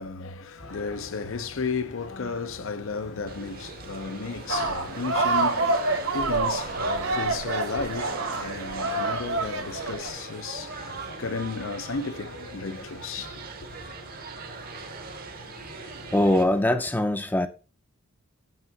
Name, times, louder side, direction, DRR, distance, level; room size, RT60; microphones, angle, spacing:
voice 1, 0.0-13.7, left 4 dB, 60° left, 0.6 m, -34 dB
sound 1, 0.6-16.7, left 1 dB, 85° left, 4.2 m, -46 dB
sound 2, 3.3-16.4, right 5 dB, 40° right, 0.9 m, -42 dB
sound 3, 4.5-10.1, right 3 dB, 75° right, 1.8 m, -27 dB
voice 2, 16.1-17.5, left 1 dB, 10° left, 0.5 m, -22 dB
7.2 x 3.7 x 6.4 m
head